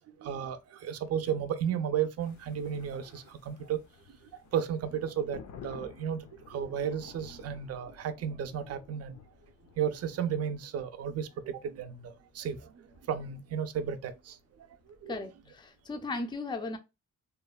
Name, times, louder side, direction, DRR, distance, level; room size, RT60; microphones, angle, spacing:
voice 1, 0.2-3.8 4.5-6.2 6.5-9.2 9.8-14.4 15.0-15.2, right 8 dB, 50° right, 0.4 m, -33 dB
sound 1, 2.2-15.9, left 7 dB, 65° left, 0.5 m, -54 dB
voice 2, 15.1-16.8, left 3 dB, 15° left, 0.4 m, -36 dB
3.0 x 2.1 x 2.2 m
cardioid pair, 110°, 31 cm